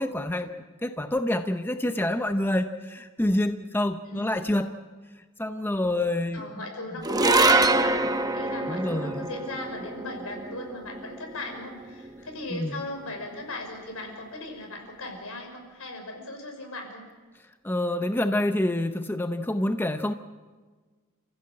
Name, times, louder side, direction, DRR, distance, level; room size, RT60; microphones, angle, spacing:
voice 1, 0.0-4.7 5.4-6.6 8.7-9.3 12.5-12.8 17.6-20.1, left 1 dB, 10° left, 8 dB, 0.7 m, -27 dB
voice 2, 4.1-4.4 6.3-17.0, left 2 dB, 70° left, 3 dB, 5.9 m, -38 dB
sound 1, 7.0-13.5, right 2 dB, 15° right, 0.9 m, -26 dB
29.0 x 15.5 x 8.7 m, 1.4 s
head